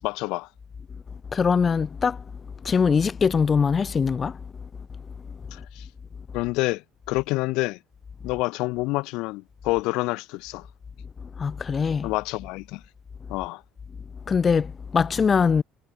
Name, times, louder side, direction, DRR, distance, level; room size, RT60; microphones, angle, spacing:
voice 1, 0.0-0.5 5.5-5.9 6.3-6.8 7.1-7.8 8.2-10.7 12.0-12.8 13.3-13.6, left 23 dB, 75° left, 6.0 m, -27 dB
voice 2, 1.3-2.2 2.6-4.4 11.4-12.1 14.3-15.6, left 6 dB, 30° left, 1.0 m, -22 dB
cardioid pair, 120°, 0 cm